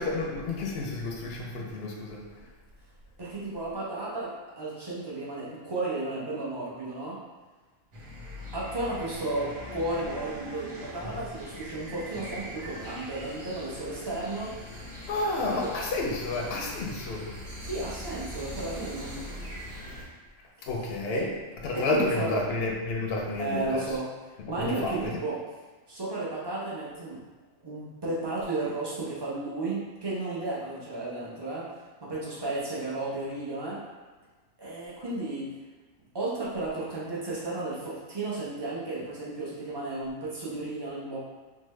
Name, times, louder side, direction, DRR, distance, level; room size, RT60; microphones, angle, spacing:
voice 1, 0.0-2.2 15.1-17.3 20.7-21.3 21.6-23.8 24.8-25.1, left 3 dB, 65° left, -1 dB, 0.6 m, -30 dB
voice 2, 3.2-7.2 8.5-14.6 15.5-15.7 17.6-19.3 21.1-21.2 21.7-22.4 23.4-24.1 24.4-25.4 25.9-27.2 27.6-31.7 32.0-33.8 34.6-35.5 36.1-41.2, right 2 dB, 35° right, -6 dB, 0.4 m, -33 dB
sound 1, 7.9-20.1, equal, 85° right, 1.5 m, -41 dB
3.6 x 2.0 x 3.1 m, 1.3 s
omnidirectional pair, 1.4 m